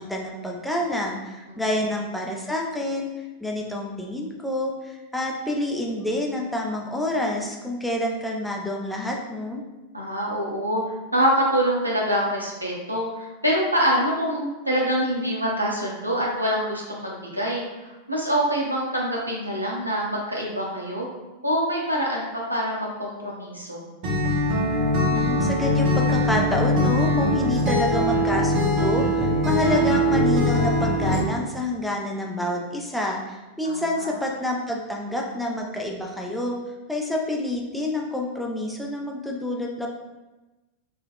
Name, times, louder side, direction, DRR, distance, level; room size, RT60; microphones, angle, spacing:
voice 1, 0.0-3.1 3.4-9.6 25.1-36.6 36.9-39.9, left 1 dB, 5° left, -1 dB, 0.4 m, -28 dB
voice 2, 9.9-21.1 21.4-23.8 33.6-34.1, equal, 85° right, -3 dB, 0.6 m, -25 dB
Acoustic guitar, 24.0-31.2, left 1 dB, 45° right, 0.6 m, -22 dB
2.2 x 2.1 x 3.3 m, 1.1 s
figure-of-eight pair, 90°, 0 cm